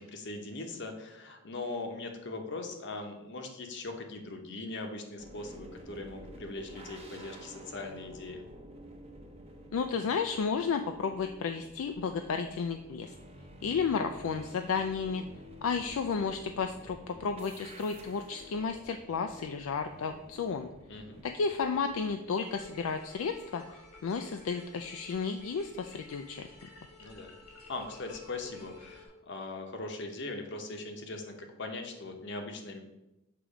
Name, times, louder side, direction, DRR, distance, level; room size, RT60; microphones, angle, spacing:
voice 1, 0.0-8.4 20.9-21.2 27.0-27.3 27.7-32.8, left 2 dB, 50° left, 4 dB, 0.8 m, -40 dB
sound 1, 5.2-22.1, equal, 25° right, 0.7 m, -51 dB
voice 2, 9.7-13.1 13.6-15.2 15.6-20.7 21.2-23.6 24.0-26.5, left 5 dB, 65° left, 6 dB, 0.3 m, -32 dB
sound 2, 22.4-29.1, left 2 dB, 90° left, 1.8 m, -53 dB
6.7 x 3.0 x 4.8 m, 0.95 s
head